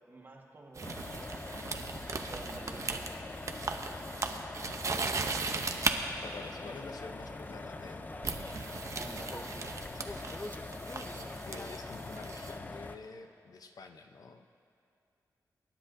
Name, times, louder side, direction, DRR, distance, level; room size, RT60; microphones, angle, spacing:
voice 1, 0.1-1.1 2.2-3.1 8.9-9.8, right 2 dB, 35° right, 0 dB, 1.5 m, -49 dB
sound 1, 0.8-13.0, left 2 dB, 25° left, 0.6 m, -43 dB
sound 2, 0.8-6.0 7.2-7.5 8.2-12.6, right 4 dB, 50° right, 0.7 m, -37 dB
voice 2, 4.6-5.8 6.2-8.1 11.1-14.5, left 4 dB, 75° left, 6 dB, 0.7 m, -48 dB
25.5 x 10.0 x 2.7 m, 2.6 s
wide cardioid pair, 110°, 7 cm